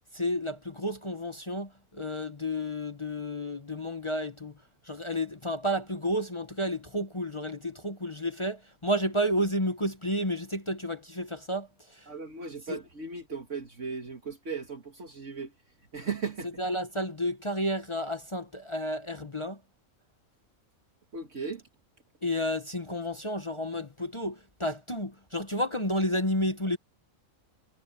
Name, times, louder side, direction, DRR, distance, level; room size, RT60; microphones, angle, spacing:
voice 1, 0.1-12.1 12.7-12.8 16.6-19.6 22.2-26.8, equal, 20° left, 1.2 m, -31 dB
voice 2, 12.1-15.5 15.9-16.5 21.1-21.6, right 5 dB, 55° right, 2.2 m, -37 dB
omnidirectional pair, 1.5 m